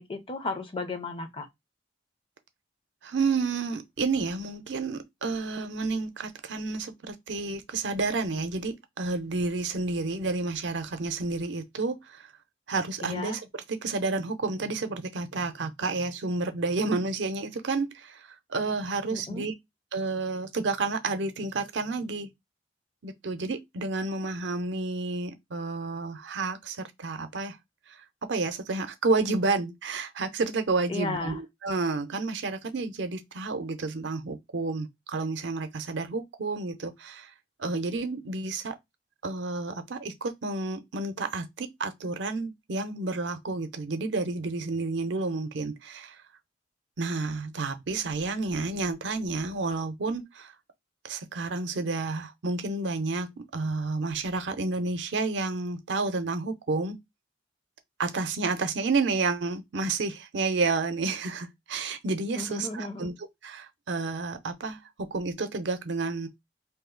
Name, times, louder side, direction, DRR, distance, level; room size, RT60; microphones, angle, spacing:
voice 1, 0.0-1.5 13.0-13.4 19.1-19.5 30.9-31.4 62.4-63.1, left 3 dB, 30° left, 0.5 m, -34 dB
voice 2, 3.0-12.3 12.7-13.4 13.8-19.5 19.9-22.3 23.0-27.6 28.3-37.3 37.6-38.7 39.2-46.2 47.0-50.5 51.0-57.0 58.0-63.1 63.4-66.3, right 3 dB, 75° right, 0.6 m, -30 dB
2.6 x 2.4 x 3.7 m
head